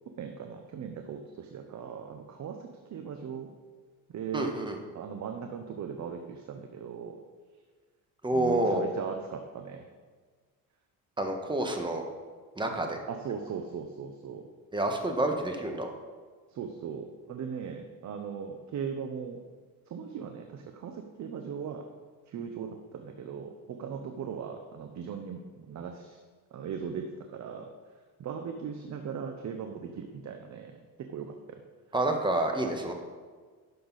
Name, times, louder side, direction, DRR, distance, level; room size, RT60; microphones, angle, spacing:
voice 1, 0.2-3.5 4.1-4.6 4.9-7.2 8.3-9.9 13.1-14.5 16.5-19.4 19.9-21.8 22.3-26.2 26.5-31.6, right 7 dB, 50° right, 5 dB, 0.9 m, -39 dB
voice 2, 4.3-4.8 8.2-8.8 11.2-12.0 12.6-13.0 14.7-15.9 31.9-32.9, right 1 dB, 15° right, 3 dB, 1.4 m, -28 dB
11.5 x 6.7 x 4.1 m, 1.5 s
cardioid pair, 105°, 36 cm